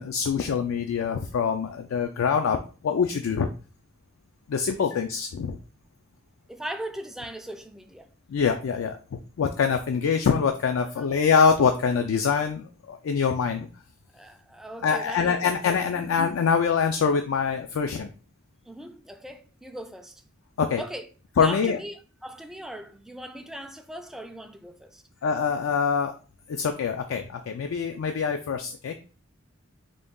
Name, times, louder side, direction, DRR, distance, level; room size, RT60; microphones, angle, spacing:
voice 1, 0.0-3.5 4.5-5.6 8.3-13.7 14.8-18.1 20.6-20.8 21.4-21.8 25.2-26.1 26.5-28.9, left 6 dB, 80° left, 0.4 m, -24 dB
voice 2, 6.5-8.1 10.8-11.2 14.1-15.6 15.8-16.1 18.7-20.2 20.8-21.1 21.4-25.0, right 1 dB, ahead, 0.3 m, -39 dB
3.8 x 2.3 x 3.5 m
head